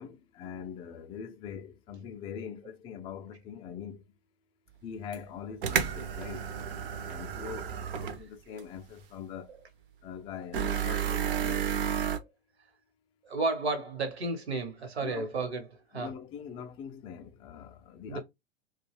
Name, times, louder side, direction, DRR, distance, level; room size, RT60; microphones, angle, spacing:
voice 1, 0.0-4.0 4.8-6.5 7.1-9.6 10.0-11.7 15.0-15.3 15.9-18.2, left 7 dB, 20° left, 0.3 m, -43 dB
sound 1, 5.1-5.2 5.6-8.2 8.6-8.7 10.5-12.2, right 8 dB, 60° right, 0.6 m, -31 dB
voice 2, 13.2-16.1 18.1-18.2, right 3 dB, 80° right, 1.0 m, -33 dB
2.4 x 2.3 x 3.1 m
figure-of-eight pair, 95°, 32 cm